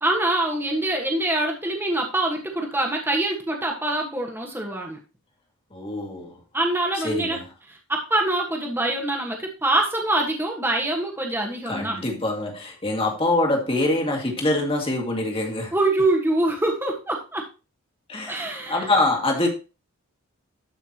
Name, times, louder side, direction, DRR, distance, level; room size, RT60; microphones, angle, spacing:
voice 1, 0.0-5.0 6.5-7.4 7.9-12.0 15.7-17.5 18.3-18.9, right 2 dB, 10° right, 1.5 m, -24 dB
voice 2, 5.7-6.4 7.0-7.4 11.7-15.7 18.1-19.5, left 2 dB, 25° left, 2.1 m, -24 dB
12.5 x 5.8 x 3.0 m
head